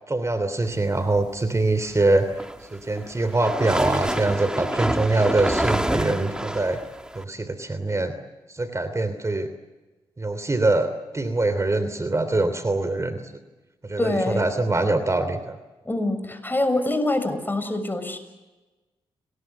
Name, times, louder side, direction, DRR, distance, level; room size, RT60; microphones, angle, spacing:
voice 1, 0.1-2.3 2.7-6.8 7.1-8.1 8.5-9.5 10.2-13.2 13.8-15.6, right 2 dB, 30° right, 11 dB, 3.1 m, -23 dB
sound 1, 2.1-7.2, right 1 dB, 5° right, 2.3 m, -27 dB
voice 2, 14.0-14.4 15.8-18.2, left 2 dB, 20° left, 9 dB, 6.6 m, -25 dB
29.5 x 20.0 x 8.1 m, 1.2 s
supercardioid pair, 50°, 10 cm